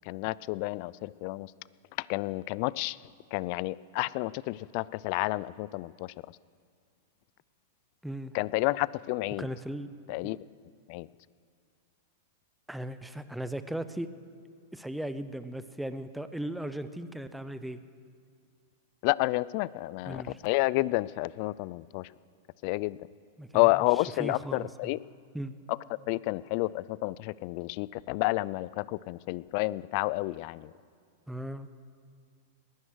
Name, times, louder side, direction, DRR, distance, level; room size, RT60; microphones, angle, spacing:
voice 1, 0.1-1.5 2.0-3.0 3.3-6.1 8.3-9.5 10.1-10.4 10.9-11.1 19.0-22.1 22.6-23.0 23.5-25.0 25.7-25.8 26.1-30.7, left 21 dB, 50° left, 21 dB, 0.3 m, -30 dB
voice 2, 8.0-8.3 9.4-9.9 10.2-10.4 12.7-14.1 14.7-17.8 20.1-20.4 23.4-23.7 24.2-24.7 25.3-25.5 31.3-31.7, right 1 dB, 5° right, 12 dB, 0.7 m, -37 dB
19.5 x 11.0 x 6.4 m, 2.2 s
hypercardioid pair, 130°, 0 cm